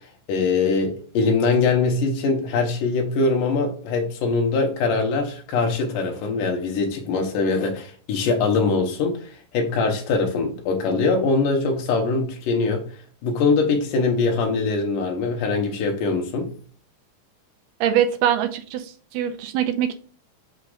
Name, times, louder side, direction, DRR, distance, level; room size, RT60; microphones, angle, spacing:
voice 1, 0.3-12.9 13.2-16.5, left 4 dB, 80° left, 2.7 m, -22 dB
voice 2, 17.8-19.9, right 10 dB, 85° right, 2.3 m, -23 dB
6.6 x 6.2 x 2.5 m
omnidirectional pair, 3.8 m